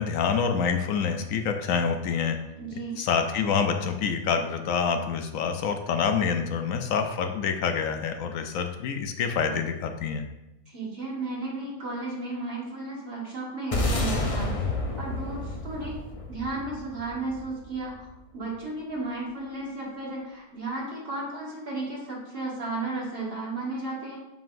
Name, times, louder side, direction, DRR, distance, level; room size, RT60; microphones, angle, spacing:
voice 1, 0.0-2.4 3.0-10.2, left 6 dB, 70° left, 6 dB, 0.9 m, -27 dB
voice 2, 2.6-3.0 10.7-14.6 15.0-18.1 18.3-24.2, right 2 dB, 40° right, -4 dB, 1.8 m, -34 dB
sound 1, 13.7-18.2, left 2 dB, 40° left, 0.5 m, -30 dB
7.1 x 5.6 x 2.6 m, 0.94 s
omnidirectional pair, 1.6 m